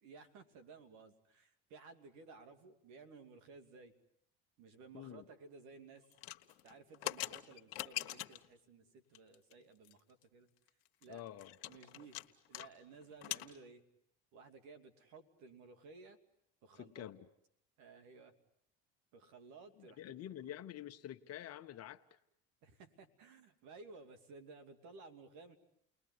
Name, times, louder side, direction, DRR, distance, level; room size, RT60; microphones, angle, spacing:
voice 1, 0.0-3.9 4.6-6.0 6.6-10.5 11.0-11.2 11.6-12.2 12.5-13.8 14.3-16.2 16.6-17.1 17.8-18.3 19.1-20.0 22.6-25.6, right 4 dB, 70° right, 8 dB, 2.7 m, -56 dB
voice 2, 4.9-5.3 11.1-11.5 16.7-17.3 19.8-22.2, left 11 dB, 55° left, 8 dB, 1.3 m, -48 dB
sound 1, 6.1-8.5 9.1-9.5 9.8-9.9 10.2-10.3 10.7-12.7 12.9-13.5, left 15 dB, 80° left, 1.3 m, -43 dB
30.0 x 20.5 x 9.6 m, 0.76 s
hypercardioid pair, 80°, 30 cm